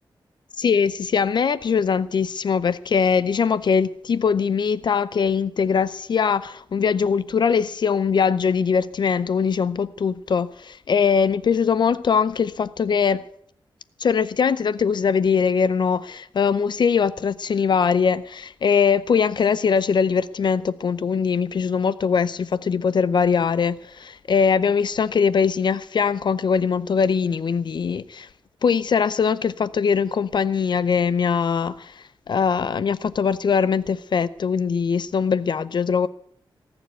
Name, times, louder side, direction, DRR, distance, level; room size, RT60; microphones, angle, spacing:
voice 1, 0.6-13.2 14.0-28.3 28.6-36.1, left 6 dB, 55° left, 0.5 m, -21 dB
18.5 x 7.0 x 9.1 m
wide cardioid pair, 140°, 9 cm